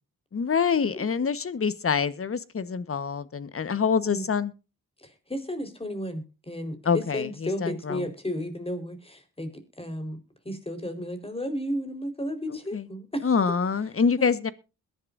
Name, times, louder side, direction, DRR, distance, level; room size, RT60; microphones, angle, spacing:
voice 1, 0.3-4.5 6.8-8.0 12.5-12.9 13.2-14.5, left 6 dB, 40° left, 1.4 m, -26 dB
voice 2, 5.0-9.5 9.8-10.2 10.4-13.3 14.2-14.4, equal, 15° left, 4.5 m, -33 dB
21.5 x 11.0 x 2.6 m
cardioid pair, 85°, 33 cm